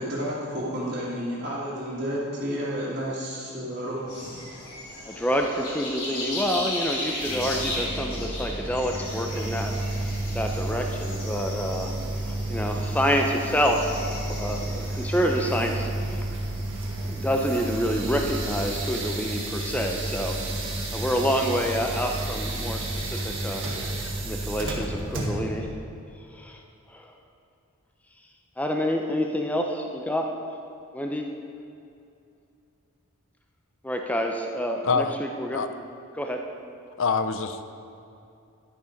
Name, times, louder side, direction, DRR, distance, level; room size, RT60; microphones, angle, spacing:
voice 1, 0.0-4.3, equal, 40° right, -11 dB, 2.1 m, -31 dB
sound 1, 4.1-15.6, left 1 dB, 85° left, 2.7 m, -36 dB
voice 2, 5.0-9.7 10.3-14.0 14.3-16.2 17.0-23.7 24.2-25.7 26.3-26.6 26.9-27.1 28.6-30.3 30.9-31.2 33.8-35.6 36.1-36.4, equal, 5° left, 2 dB, 0.6 m, -28 dB
sound 2, 7.2-25.6, right 2 dB, 55° right, 1.6 m, -31 dB
voice 3, 34.8-35.2 35.5-35.7 37.0-37.6, left 5 dB, 60° left, 10 dB, 0.5 m, -25 dB
11.5 x 6.8 x 5.2 m, 2.6 s
head